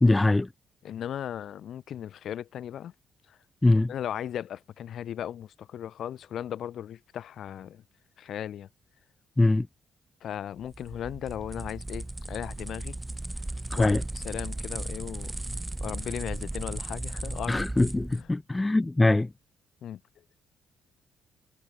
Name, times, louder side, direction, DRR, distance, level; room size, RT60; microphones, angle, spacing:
voice 1, 0.0-0.5 3.6-3.9 9.4-9.7 13.7-14.0 17.5-19.3, left 2 dB, 15° left, 0.4 m, -22 dB
voice 2, 0.8-2.9 3.3-3.4 3.9-7.8 8.2-8.7 10.2-12.9 13.7-15.4 15.8-17.7 18.2-18.3 19.8-20.0, left 10 dB, 65° left, 1.9 m, -37 dB
sound 1, 10.6-18.2, right 2 dB, 15° right, 1.7 m, -36 dB
cardioid pair, 90°, 0 cm